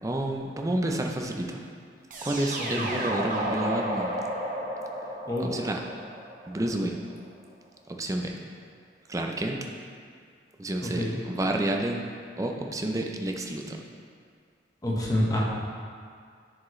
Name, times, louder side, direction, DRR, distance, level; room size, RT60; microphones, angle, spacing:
voice 1, 0.0-1.6 2.2-4.1 5.5-5.8 6.5-7.0 7.9-8.4 9.1-9.6 10.6-12.1 12.4-13.8, right 1 dB, 20° right, 2 dB, 0.5 m, -29 dB
sound 1, 2.1-7.0, right 1 dB, 45° right, 0.9 m, -33 dB
voice 2, 5.2-5.6 10.8-11.2 14.8-15.4, left 1 dB, 20° left, -4 dB, 1.1 m, -28 dB
10.0 x 4.9 x 3.2 m, 2.1 s
head